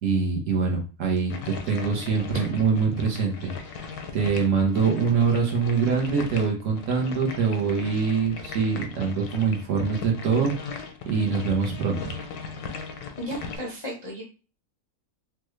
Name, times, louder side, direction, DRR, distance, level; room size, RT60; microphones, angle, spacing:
voice 1, 0.0-3.8 4.1-12.1, right 5 dB, 60° right, 0 dB, 1.2 m, -24 dB
sound 1, 1.3-13.6, left 5 dB, 80° left, 1.1 m, -38 dB
voice 2, 13.2-14.2, equal, 30° left, -3 dB, 0.5 m, -34 dB
3.3 x 2.2 x 3.1 m, 0.34 s
omnidirectional pair, 1.6 m